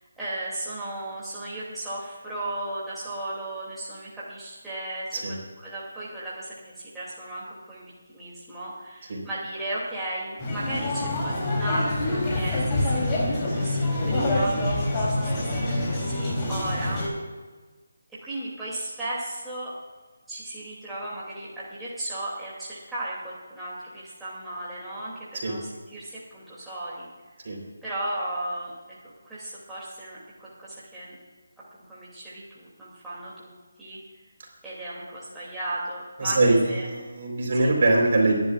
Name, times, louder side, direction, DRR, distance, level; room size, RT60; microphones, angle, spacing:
voice 1, 0.2-17.0 18.2-19.7 20.3-27.1 27.8-31.1 31.7-33.5 33.8-34.0 34.6-36.4 36.7-36.9 37.6-37.8, right 1 dB, 5° right, -10 dB, 2.7 m, -35 dB
sound 1, 10.4-17.1, left 1 dB, 20° left, 3.4 m, -26 dB
voice 2, 36.2-38.4, right 2 dB, 45° right, -1 dB, 4.0 m, -22 dB
28.5 x 10.5 x 2.5 m, 1.4 s
figure-of-eight pair, 155°, 0 cm